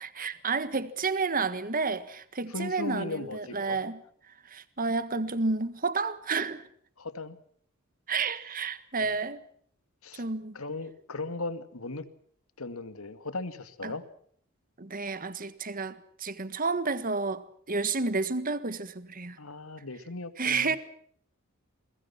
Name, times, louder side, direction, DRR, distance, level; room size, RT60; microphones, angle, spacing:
voice 1, 0.0-4.0 4.5-6.6 8.1-9.4 10.2-10.6 13.8-13.9 14.8-15.9 16.2-17.4 17.7-19.4 20.4-20.8, right 4 dB, 40° right, 1.6 m, -30 dB
voice 2, 2.5-3.8 7.0-7.4 9.0-9.1 10.0-10.2 10.5-12.1 12.6-14.0 19.4-20.8, left 3 dB, 90° left, 2.3 m, -37 dB
28.5 x 23.0 x 6.0 m
head